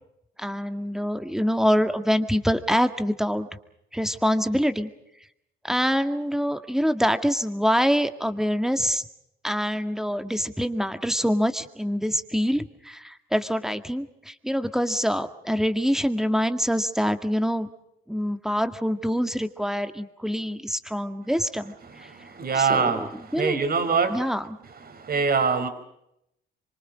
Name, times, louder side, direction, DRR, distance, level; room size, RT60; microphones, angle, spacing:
voice 1, 0.4-3.5 3.9-4.9 5.6-9.1 9.4-17.7 18.1-22.1 22.5-23.6 24.1-24.6, equal, ahead, 9 dB, 1.9 m, -25 dB
voice 2, 22.1-23.1 23.4-24.2 24.9-25.7, right 5 dB, 50° right, 9 dB, 4.4 m, -23 dB
25.5 x 24.5 x 6.4 m, 0.79 s
cardioid pair, 90°, 20 cm